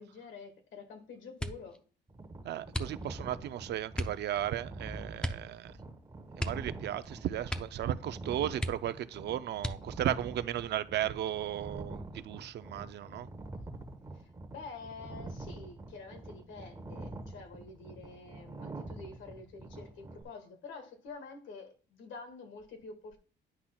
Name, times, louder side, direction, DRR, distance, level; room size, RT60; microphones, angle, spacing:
voice 1, 0.0-1.8 14.1-23.2, left 4 dB, 80° left, 1.8 m, -48 dB
sound 1, 1.4-1.8 2.7-3.3 3.9-4.3 5.2-5.5 5.8-5.9 6.3-7.1 7.4-7.9 8.2-8.3 8.6-9.1 9.6-10.1 10.8-11.5 11.8-12.2, equal, 5° left, 0.5 m, -37 dB
sound 2, 2.1-20.2, right 2 dB, 15° right, 1.0 m, -46 dB
voice 2, 2.4-5.8 6.4-13.3, right 11 dB, 65° right, 0.5 m, -35 dB
9.9 x 5.8 x 2.3 m
cardioid pair, 135°, 19 cm